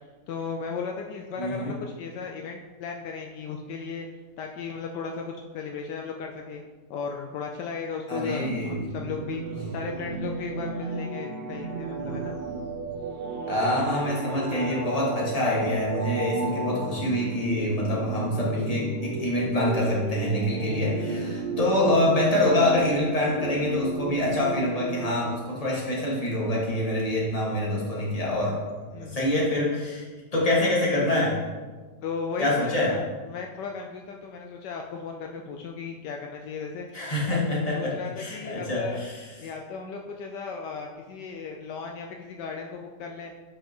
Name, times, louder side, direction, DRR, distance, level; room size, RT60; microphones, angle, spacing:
voice 1, 0.3-4.1 4.4-6.6 6.9-9.4 9.7-12.4 28.9-29.2 32.0-37.4 37.7-39.0 39.4-43.3, left 5 dB, 75° left, 2 dB, 1.2 m, -36 dB
voice 2, 1.4-1.7 8.1-8.8 13.5-28.6 29.0-30.0 30.3-31.3 32.4-32.9 36.9-39.2, left 1 dB, 20° left, -5 dB, 1.7 m, -25 dB
sound 1, 8.2-25.1, right 3 dB, 80° right, 1.5 m, -34 dB
8.8 x 5.4 x 3.0 m, 1.4 s
omnidirectional pair, 1.9 m